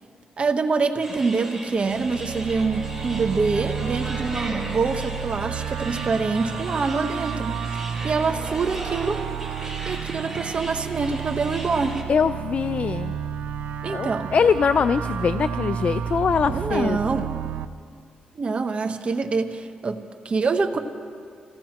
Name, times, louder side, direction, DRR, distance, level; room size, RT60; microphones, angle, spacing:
voice 1, 0.4-9.3 9.8-12.0 13.8-14.3 16.5-17.3 18.3-20.8, right 4 dB, 45° right, 7 dB, 1.1 m, -25 dB
sound 1, 1.0-12.0, right 1 dB, 5° right, 4.2 m, -37 dB
sound 2, 1.8-17.7, right 8 dB, 85° right, 0.5 m, -31 dB
voice 2, 12.1-13.1 13.9-17.0, left 6 dB, 55° left, 12 dB, 0.4 m, -22 dB
26.5 x 16.5 x 3.0 m, 2.3 s
cardioid pair, 75°, 3 cm